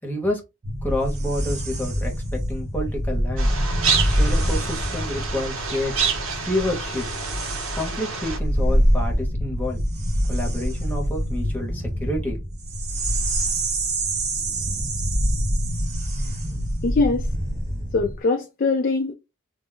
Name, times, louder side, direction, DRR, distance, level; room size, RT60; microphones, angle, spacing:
voice 1, 0.0-0.4 0.8-3.5 4.1-5.9 6.4-7.1 7.7-9.8 10.3-12.4, left 1 dB, 10° left, 0.9 m, -29 dB
sound 1, 0.6-18.2, equal, 35° right, 0.7 m, -25 dB
sound 2, 3.4-8.4, right 5 dB, 80° right, 0.8 m, -28 dB
voice 2, 16.2-17.3 17.9-19.1, left 3 dB, 45° left, 0.4 m, -23 dB
2.2 x 2.0 x 3.7 m
head